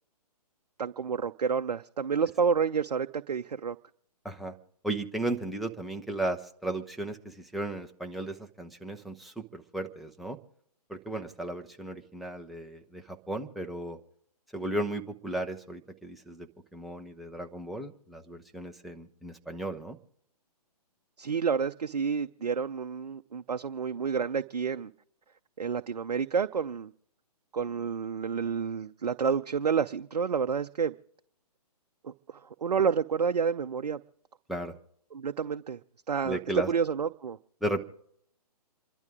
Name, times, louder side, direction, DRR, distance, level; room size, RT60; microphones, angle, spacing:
voice 1, 0.8-3.8 21.2-24.9 25.6-26.9 27.5-30.9 32.0-34.0 35.1-35.8 36.1-36.4 36.7-37.4, right 6 dB, 75° right, 0.6 m, -29 dB
voice 2, 4.8-10.4 10.9-14.0 14.5-20.0 34.5-34.8 36.2-36.7 37.6-37.8, right 1 dB, ahead, 0.9 m, -35 dB
28.0 x 12.0 x 3.7 m
figure-of-eight pair, 130°, 20 cm